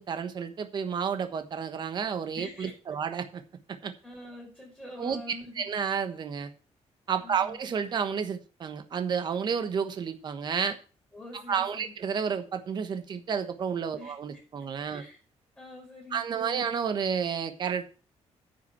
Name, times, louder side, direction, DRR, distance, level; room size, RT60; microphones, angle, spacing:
voice 1, 0.0-3.4 3.8-3.9 5.0-5.2 5.5-6.5 7.1-10.8 11.3-15.0 16.1-17.8, right 7 dB, 40° right, 9 dB, 1.2 m, -31 dB
voice 2, 2.4-2.7 4.0-5.7 7.2-7.6 11.1-11.9 14.0-14.1 14.9-15.2 15.6-16.7, left 1 dB, 10° left, -5 dB, 5.4 m, -45 dB
9.9 x 6.0 x 7.2 m, 0.37 s
cardioid pair, 175°, 12 cm